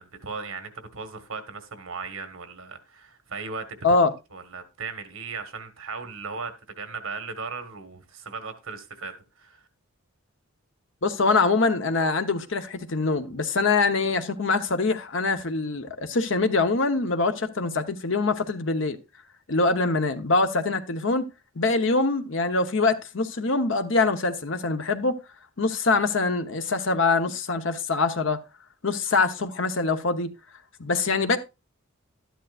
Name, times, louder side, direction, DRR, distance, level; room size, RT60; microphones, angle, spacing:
voice 1, 0.0-3.8 4.3-9.7, right 4 dB, 80° right, 1.5 m, -37 dB
voice 2, 11.0-19.0 19.5-21.3 21.6-25.2 25.6-28.4 28.8-30.3 30.8-31.4, left 3 dB, 60° left, 0.9 m, -24 dB
12.0 x 10.5 x 2.5 m
head